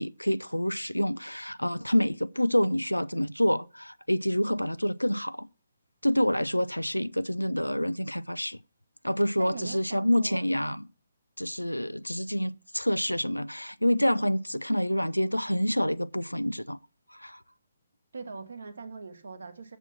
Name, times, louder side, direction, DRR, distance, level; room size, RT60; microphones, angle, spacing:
voice 1, 0.0-5.5 6.0-8.6 9.0-10.9 11.4-16.8 17.2-17.4, equal, 85° left, 0.4 m, -27 dB
voice 2, 9.4-10.4 18.1-19.8, right 4 dB, 60° right, 1.5 m, -41 dB
8.0 x 7.2 x 5.9 m
figure-of-eight pair, 135°, 0 cm